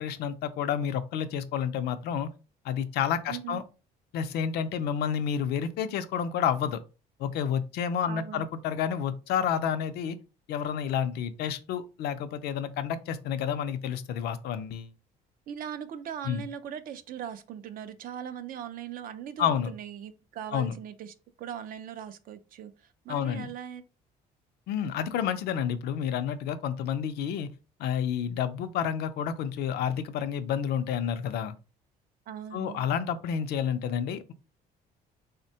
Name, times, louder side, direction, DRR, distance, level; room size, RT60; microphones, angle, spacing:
voice 1, 0.0-2.3 2.6-3.6 4.1-6.8 7.2-10.2 10.5-14.9 16.3-16.4 19.4-19.7 20.5-20.7 23.1-23.5 24.7-27.5 27.8-31.5 32.5-34.3, left 8 dB, 75° left, 0.4 m, -30 dB
voice 2, 3.3-3.6 8.1-8.5 15.5-23.8 32.3-32.9, right 9 dB, 55° right, 0.4 m, -40 dB
3.4 x 2.1 x 2.7 m
cardioid pair, 110°, 17 cm